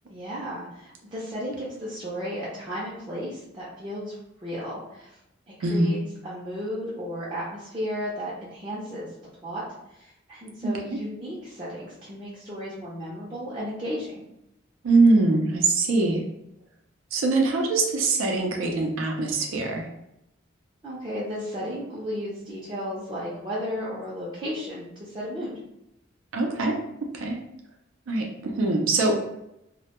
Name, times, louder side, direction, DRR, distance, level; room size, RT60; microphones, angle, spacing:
voice 1, 0.1-4.2 4.4-5.1 5.5-6.0 6.2-9.1 9.4-9.6 9.9-14.1 20.8-25.5, equal, 20° right, -9 dB, 0.4 m, -34 dB
voice 2, 5.6-5.9 10.6-11.0 14.8-16.2 17.1-19.9 26.3-26.8 27.1-27.4 28.1-29.2, right 3 dB, 85° right, 2 dB, 0.4 m, -23 dB
2.1 x 2.1 x 2.8 m, 0.83 s
head